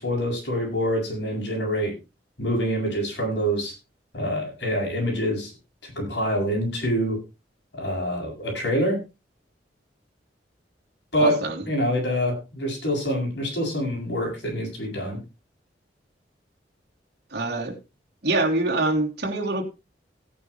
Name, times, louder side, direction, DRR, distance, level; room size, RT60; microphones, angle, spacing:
voice 1, 0.0-1.9 2.4-3.7 4.1-5.5 5.8-7.2 7.7-9.0 11.1-11.4 11.6-15.2, equal, 70° left, 1 dB, 7.9 m, -26 dB
voice 2, 11.1-11.6 17.3-17.8 18.2-19.6, right 2 dB, 60° right, 0 dB, 3.4 m, -25 dB
17.0 x 9.7 x 3.3 m, 0.27 s
head